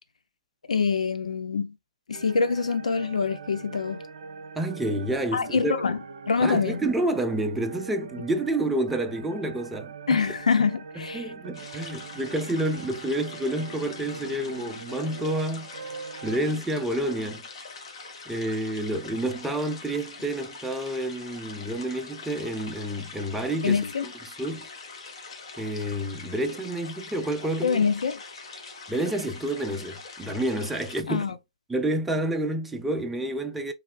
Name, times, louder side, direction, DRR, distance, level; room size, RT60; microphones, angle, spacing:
voice 1, 0.7-1.7 2.1-4.0 5.3-6.0 6.3-6.8 10.1-11.2 23.6-24.0 27.6-28.2 31.1-31.3, left 5 dB, 70° left, 0.5 m, -25 dB
sound 1, 2.1-16.5, right 5 dB, 60° right, 0.6 m, -42 dB
voice 2, 4.6-5.8 6.4-10.2 11.0-15.7 16.2-17.5 18.3-24.7 25.6-27.8 28.9-31.3 31.7-33.7, right 1 dB, 5° right, 0.3 m, -29 dB
sound 2, 11.5-31.0, left 4 dB, 50° left, 1.0 m, -43 dB
3.0 x 2.7 x 2.3 m
hypercardioid pair, 140°, 4 cm